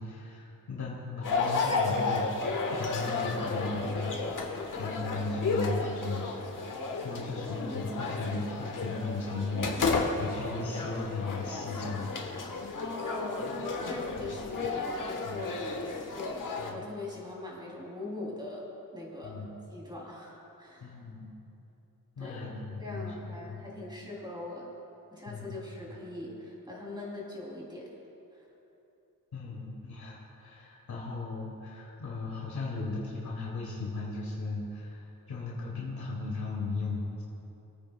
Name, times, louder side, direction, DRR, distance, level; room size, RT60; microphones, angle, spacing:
voice 1, 0.0-6.3 6.9-12.1 14.2-14.4 15.2-15.4 16.6-16.8 19.2-19.5 20.8-21.3 22.2-23.6 25.3-25.5 29.3-37.2, left 3 dB, 80° left, -5 dB, 2.1 m, -37 dB
sound 1, 1.2-16.7, left 3 dB, 60° left, 1.2 m, -33 dB
voice 2, 12.8-18.6 18.9-19.4 19.7-21.0 22.2-22.5 22.8-24.7 25.1-27.9 28.3-28.5, left 2 dB, 10° right, -4 dB, 2.9 m, -41 dB
25.0 x 9.1 x 2.2 m, 3.0 s
wide cardioid pair, 95°, 36 cm